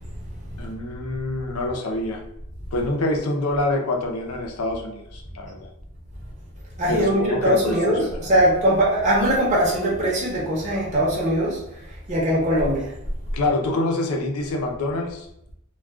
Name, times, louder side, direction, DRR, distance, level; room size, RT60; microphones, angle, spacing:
voice 1, 0.6-2.2 2.7-5.7 6.9-8.3 13.3-15.3, left 2 dB, 90° left, 2 dB, 0.6 m, -26 dB
voice 2, 6.8-11.6 12.1-12.9, right 1 dB, 35° right, -5 dB, 0.8 m, -21 dB
2.3 x 2.3 x 3.5 m, 0.78 s
head